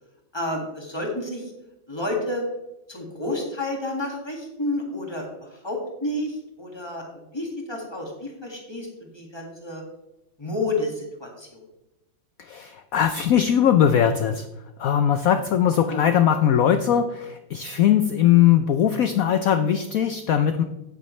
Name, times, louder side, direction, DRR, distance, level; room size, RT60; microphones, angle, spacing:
voice 1, 0.3-1.5 1.9-2.4 2.9-8.9 9.1-9.8 10.4-11.6 15.9-16.0, left 2 dB, 15° left, 0 dB, 1.7 m, -30 dB
voice 2, 12.5-14.4 14.8-20.6, left 9 dB, 85° left, 8 dB, 0.7 m, -20 dB
9.4 x 9.3 x 3.1 m, 0.95 s
omnidirectional pair, 2.1 m